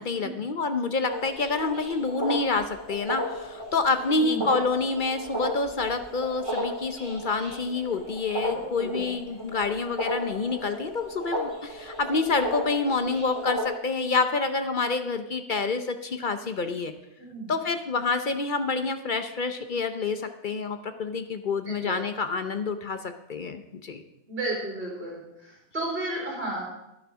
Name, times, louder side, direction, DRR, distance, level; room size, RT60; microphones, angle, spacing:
voice 1, 0.0-16.9 17.5-24.0, left 4 dB, 45° left, 9 dB, 0.7 m, -28 dB
sound 1, 1.1-13.6, equal, 20° right, 4.3 m, -34 dB
voice 2, 8.5-9.0 17.3-17.5 21.7-22.0 24.3-25.2 25.4-26.6, right 2 dB, 40° right, -4 dB, 4.3 m, -33 dB
11.5 x 9.2 x 6.1 m, 0.87 s
omnidirectional pair, 1.6 m